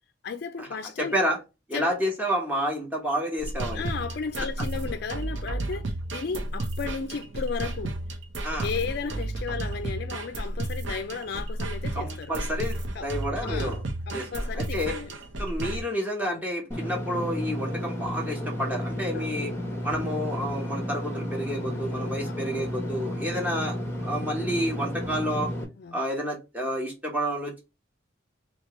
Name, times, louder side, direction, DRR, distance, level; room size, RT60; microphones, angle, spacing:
voice 1, 0.2-1.2 1.7-1.9 3.7-8.0 8.6-12.3 12.9-13.1 13.4-13.8 14.1-15.1 16.3-16.4 19.1-19.3 22.2-22.4 25.8-26.0, left 5 dB, 55° left, 0.4 m, -34 dB
voice 2, 1.0-1.4 1.7-3.8 8.4-8.7 11.9-13.8 14.1-14.3 14.5-15.0 15.4-19.5 19.8-23.8 24.0-25.5 25.9-27.6, equal, 10° right, 1.1 m, -29 dB
sound 1, 3.4-15.8, right 1 dB, 70° right, 0.8 m, -32 dB
Engine / Mechanisms, 16.7-25.6, equal, 15° left, 0.8 m, -32 dB
3.0 x 2.9 x 3.0 m
head